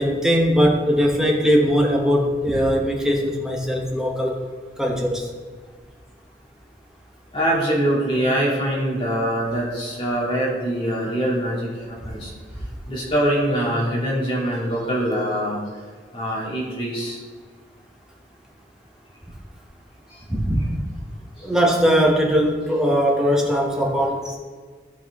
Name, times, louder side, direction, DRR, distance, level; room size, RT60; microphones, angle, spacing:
voice 1, 0.0-4.4 4.8-5.3 20.3-20.8 21.4-24.4, equal, 5° right, -1 dB, 0.9 m, -20 dB
voice 2, 7.3-12.3 12.9-15.6 16.1-17.2 20.1-20.2 21.4-21.5, right 1 dB, 30° left, -5 dB, 2.1 m, -23 dB
13.0 x 4.3 x 3.5 m, 1.5 s
head